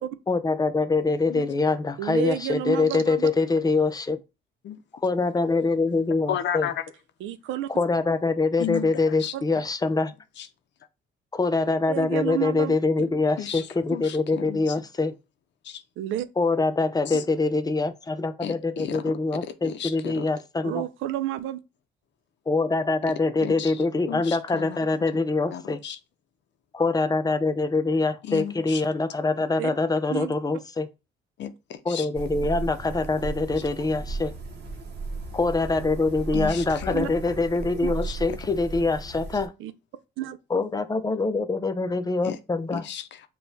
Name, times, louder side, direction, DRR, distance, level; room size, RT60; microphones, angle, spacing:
voice 1, 0.3-4.2 5.0-6.7 7.7-10.1 11.3-15.1 16.4-20.9 22.5-25.8 26.7-30.9 31.9-34.3 35.3-39.5 40.5-42.9, left 3 dB, 20° left, 0.5 m, -24 dB
voice 2, 2.0-3.3 7.2-7.7 9.3-9.4 11.9-12.8 16.0-16.3 20.6-21.6 23.9-24.0 29.6-29.7 30.1-30.3 33.8-33.9 36.9-37.1 37.8-37.9 39.6-39.7 40.2-40.4, right 13 dB, 80° right, 0.4 m, -30 dB
voice 3, 6.3-6.9 8.6-9.3 10.4-10.5 13.0-13.1 13.4-14.7 15.6-15.8 17.1-17.2 18.4-20.3 23.0-23.1 23.4-25.1 25.5-26.0 28.2-28.8 31.4-32.1 36.3-37.3 38.0-38.4 42.2-42.4 42.7-43.3, left 9 dB, 65° left, 0.6 m, -34 dB
sound 1, 32.1-39.5, right 3 dB, 55° right, 1.0 m, -35 dB
6.1 x 2.3 x 2.7 m
cardioid pair, 90°, 20 cm